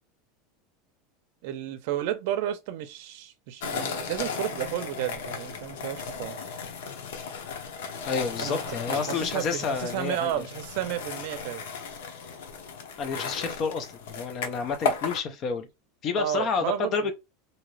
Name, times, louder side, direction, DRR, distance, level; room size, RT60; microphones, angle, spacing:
voice 1, 1.4-6.6 8.4-11.6 16.2-17.1, right 12 dB, 55° right, 0.6 m, -32 dB
sound 1, 3.6-15.2, left 5 dB, 85° left, 0.7 m, -35 dB
voice 2, 8.1-10.3 13.0-15.7 16.0-17.1, left 5 dB, 30° left, 0.5 m, -29 dB
2.7 x 2.4 x 3.1 m
supercardioid pair, 175°, 0 cm